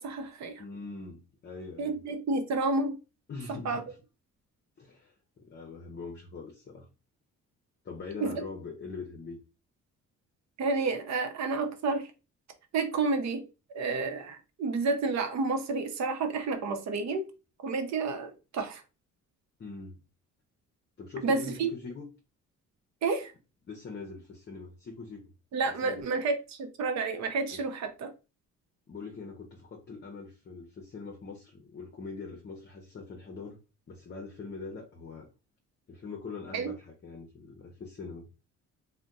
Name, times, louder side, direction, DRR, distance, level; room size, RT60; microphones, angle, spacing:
voice 1, 0.0-0.6 1.8-3.0 3.6-3.8 8.2-8.3 10.6-12.1 12.7-13.4 13.7-17.3 17.6-18.8 21.2-21.7 23.0-23.3 25.5-28.1 36.5-36.7, right 3 dB, 65° right, 0.8 m, -30 dB
voice 2, 0.6-2.0 3.3-4.0 4.8-6.9 7.8-9.4 19.6-20.0 21.0-22.1 23.6-25.3 25.8-26.0 27.5-27.6 28.9-33.6 33.9-35.3 35.9-38.2, left 4 dB, 35° left, 0.7 m, -42 dB
2.6 x 2.2 x 3.4 m
cardioid pair, 90°, 30 cm